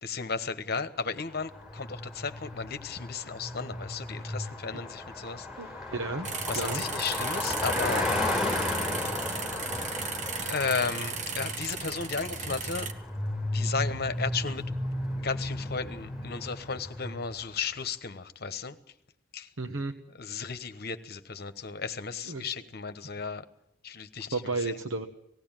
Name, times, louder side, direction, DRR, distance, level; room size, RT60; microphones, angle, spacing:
voice 1, 0.0-5.5 6.5-8.1 9.0-9.1 10.4-12.9 13.4-14.6 15.2-18.8 19.3-19.5 20.2-23.4 23.8-24.8, left 5 dB, 50° left, 10 dB, 1.2 m, -34 dB
Car passing by, 1.4-17.4, left 2 dB, 5° right, 4.7 m, -34 dB
voice 2, 5.6-6.8 19.6-19.9 22.2-22.5 24.2-25.1, right 3 dB, 85° right, 4 dB, 1.1 m, -33 dB
sound 1, 6.2-12.9, right 5 dB, 40° right, 1.4 m, -35 dB
19.0 x 16.0 x 9.0 m, 0.78 s
head